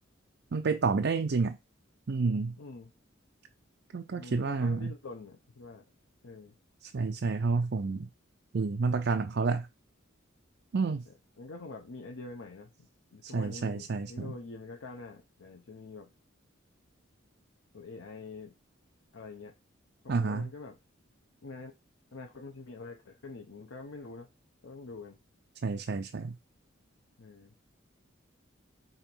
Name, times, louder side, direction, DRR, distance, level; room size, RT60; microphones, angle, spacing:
voice 1, 0.5-1.6 2.1-2.5 3.9-4.9 6.8-8.1 8.5-9.7 10.7-11.0 13.2-14.3 20.1-20.5 25.6-26.4, right 4 dB, 55° right, 0.5 m, -29 dB
voice 2, 2.6-2.9 4.1-5.8 6.2-6.5 10.8-11.0 11.4-16.1 17.7-18.5 19.1-19.5 20.0-20.8 21.4-21.7 22.1-24.3 24.6-25.2 27.2-27.5, left 3 dB, 85° left, 0.8 m, -45 dB
5.7 x 4.0 x 4.5 m
head